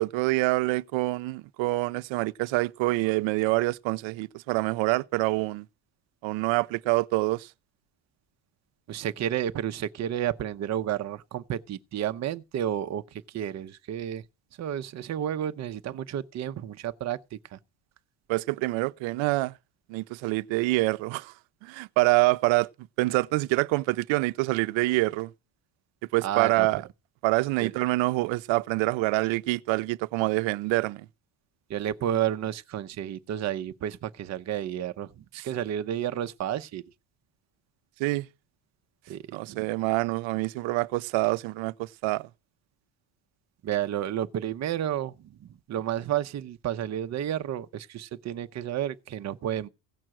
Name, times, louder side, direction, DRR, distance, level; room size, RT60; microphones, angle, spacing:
voice 1, 0.0-5.7 6.2-7.5 18.3-19.5 19.9-21.3 21.6-22.7 23.0-25.3 26.1-26.8 27.2-31.1 35.4-35.5 38.0-38.3 39.3-42.3, right 21 dB, 70° right, 0.8 m, -26 dB
voice 2, 8.9-14.2 14.6-17.6 26.2-26.7 27.6-27.7 31.7-36.8 39.1-39.7 43.6-49.7, right 11 dB, 35° right, 0.8 m, -31 dB
16.5 x 6.1 x 7.7 m
cardioid pair, 165°, 48 cm